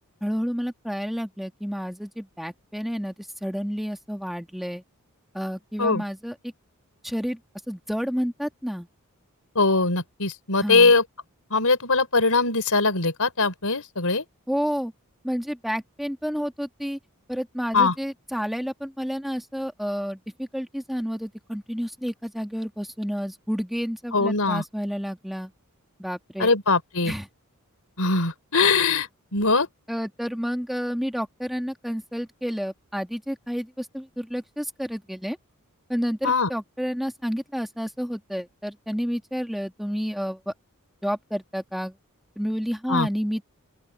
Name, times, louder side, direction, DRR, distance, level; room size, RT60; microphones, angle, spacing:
voice 1, 0.2-4.8 5.3-6.3 7.0-7.4 7.7-8.9 10.6-10.9 14.5-14.9 15.2-17.0 17.3-25.5 26.0-26.5 27.0-27.3 29.9-35.4 35.9-40.5 41.0-41.9 42.4-43.4, equal, ahead, 1.6 m, -30 dB
voice 2, 9.5-11.0 11.5-14.2 17.7-17.9 24.1-24.6 26.4-27.1 28.0-29.7 36.2-36.5 42.9-43.1, left 3 dB, 75° left, 4.9 m, -21 dB
open air
head